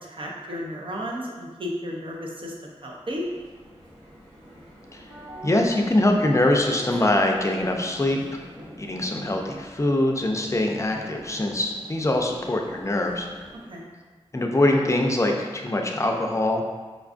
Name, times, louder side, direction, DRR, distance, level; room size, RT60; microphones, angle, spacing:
voice 1, 0.0-3.3 13.7-13.8, equal, 55° right, -1 dB, 0.6 m, -33 dB
sound 1, 3.0-13.8, right 1 dB, 80° right, 1.2 m, -45 dB
voice 2, 5.4-8.4 8.8-13.3 14.3-16.6, left 1 dB, 25° left, 1 dB, 0.4 m, -23 dB
5.0 x 2.3 x 2.4 m, 1.4 s
wide cardioid pair, 60°, 11 cm